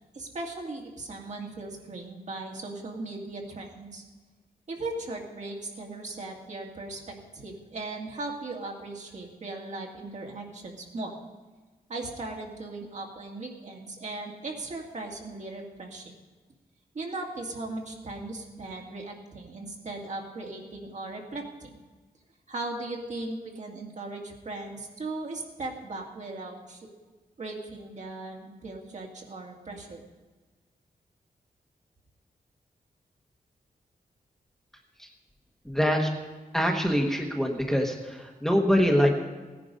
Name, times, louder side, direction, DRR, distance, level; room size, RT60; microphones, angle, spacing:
voice 1, 0.1-4.0 4.7-11.1 11.9-16.1 16.9-21.8 22.5-26.9 27.4-30.0, right 2 dB, 50° right, 0 dB, 2.2 m, -38 dB
voice 2, 35.6-36.1 36.5-39.1, equal, ahead, 1 dB, 1.3 m, -24 dB
17.0 x 10.0 x 5.3 m, 1.3 s
wide cardioid pair, 140°, 15 cm